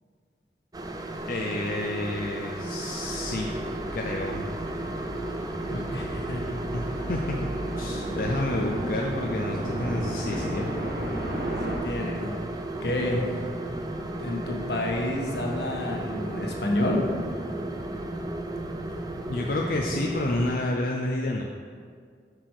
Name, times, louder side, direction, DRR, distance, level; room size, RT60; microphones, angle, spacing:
sound 1, 0.7-20.5, right 1 dB, 20° right, 0.5 m, -34 dB
voice 1, 1.3-3.5 3.9-4.5 6.7-7.4 7.7-10.7 19.3-21.5, left 2 dB, 55° left, 0 dB, 0.5 m, -30 dB
sound 2, 3.0-11.8, right 1 dB, 60° right, 1.6 m, -34 dB
voice 2, 5.7-6.6 11.7-12.4 12.8-13.3 14.2-17.0, left 1 dB, 75° left, 0 dB, 1.4 m, -29 dB
7.9 x 6.1 x 4.8 m, 2.1 s
head